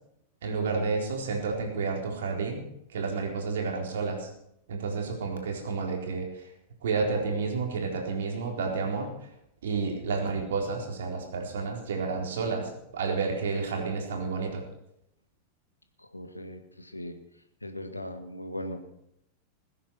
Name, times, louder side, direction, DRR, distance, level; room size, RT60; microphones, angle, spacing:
voice 1, 0.4-2.6 2.9-4.3 4.7-6.5 6.8-9.1 9.6-14.6, right 4 dB, 60° right, 1 dB, 4.1 m, -30 dB
voice 2, 16.1-17.2 17.6-18.9, left 1 dB, 85° left, 7 dB, 1.9 m, -38 dB
20.5 x 10.0 x 6.2 m, 0.78 s
figure-of-eight pair, 90°, 0 cm